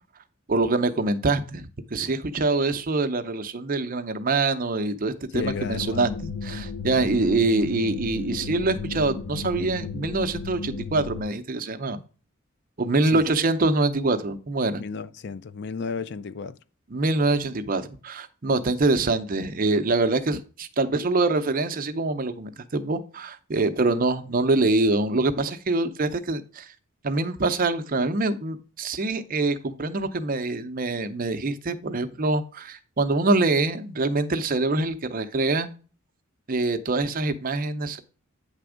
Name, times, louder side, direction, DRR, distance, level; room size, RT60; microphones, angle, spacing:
voice 1, 0.5-12.0 12.8-14.8 16.9-26.7 27.0-35.7 36.5-38.0, right 2 dB, 40° right, 0.6 m, -25 dB
voice 2, 5.3-6.2 13.1-13.2 14.8-16.6, left 5 dB, 55° left, 0.4 m, -33 dB
sound 1, 5.4-11.2, left 4 dB, 70° left, 0.9 m, -34 dB
8.9 x 3.4 x 4.9 m
head